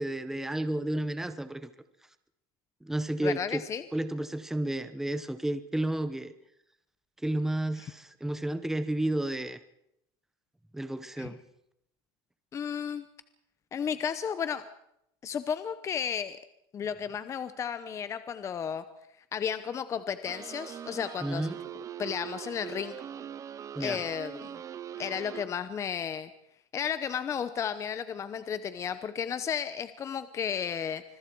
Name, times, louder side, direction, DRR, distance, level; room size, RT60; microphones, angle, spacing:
voice 1, 0.0-1.7 2.8-3.6 3.9-6.3 7.2-9.6 10.7-11.4 21.2-21.6 23.7-24.0, right 1 dB, 5° right, 12 dB, 0.9 m, -31 dB
voice 2, 3.2-3.8 11.2-11.3 12.5-13.1 13.7-14.6 15.2-16.4 16.7-18.8 19.3-21.5 22.0-23.0 23.8-24.6 25.0-26.3 26.7-31.0, left 7 dB, 25° left, 12 dB, 0.8 m, -33 dB
sound 1, 20.3-25.5, right 9 dB, 25° right, 0.7 m, -42 dB
25.5 x 22.0 x 4.7 m, 0.78 s
supercardioid pair, 150°, 13 cm